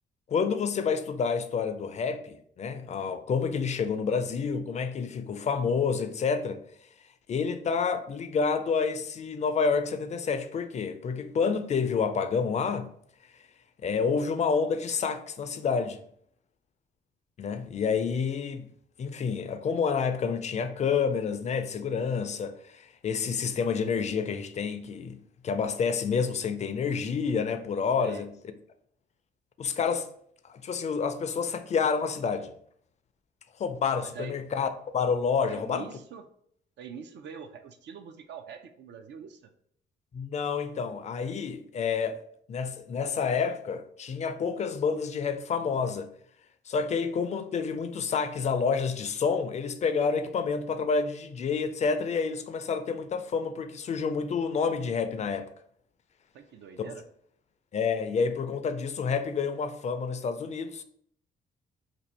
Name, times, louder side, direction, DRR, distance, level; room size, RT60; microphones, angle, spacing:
voice 1, 0.3-6.6 7.3-12.9 13.8-16.0 17.4-18.7 19.0-25.2 25.4-28.3 29.6-30.1 30.4-32.5 33.6-35.9 40.1-42.2 42.5-46.1 46.7-55.5 56.8-56.9 57.7-60.8, left 5 dB, 35° left, 0.4 m, -29 dB
voice 2, 34.0-34.4 35.5-36.2 36.8-39.5 56.3-57.0, right 6 dB, 60° right, 0.4 m, -44 dB
2.6 x 2.5 x 4.2 m
cardioid pair, 90°, 20 cm